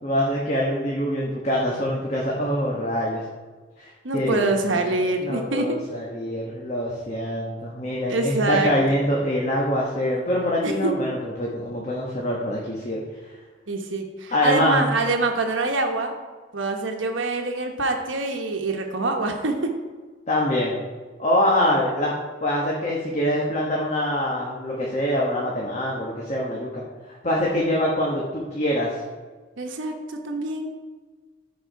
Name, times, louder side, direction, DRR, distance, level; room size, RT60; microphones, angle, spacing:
voice 1, 0.0-3.2 3.8-4.9 5.2-13.0 14.3-14.9 20.3-20.8 21.2-22.1 22.4-26.8 27.1-28.9, left 1 dB, 35° left, -3 dB, 1.2 m, -24 dB
voice 2, 4.0-5.6 8.1-8.7 10.6-10.9 13.7-16.1 16.5-19.5 29.6-30.7, right 2 dB, 85° right, 3 dB, 1.1 m, -25 dB
14.0 x 4.8 x 4.6 m, 1.4 s
head